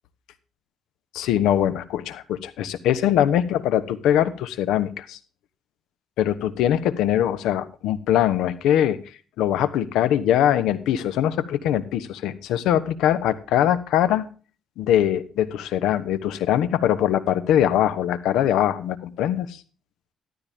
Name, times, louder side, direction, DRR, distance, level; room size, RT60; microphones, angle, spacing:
voice 1, 1.1-5.2 6.2-9.0 9.4-14.3 14.8-19.6, left 11 dB, 90° left, 14 dB, 1.1 m, -22 dB
13.5 x 12.5 x 3.6 m, 0.37 s
cardioid pair, 90°, 0 cm